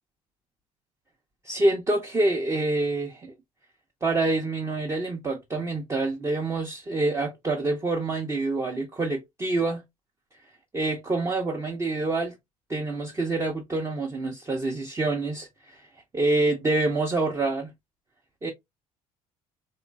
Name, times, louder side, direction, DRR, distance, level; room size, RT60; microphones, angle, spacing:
voice 1, 1.4-3.3 4.0-9.8 10.7-12.3 12.7-15.8 16.1-17.7 18.4-18.5, right 2 dB, 15° right, 0.5 m, -26 dB
3.1 x 2.2 x 2.3 m
figure-of-eight pair, 55°, 18 cm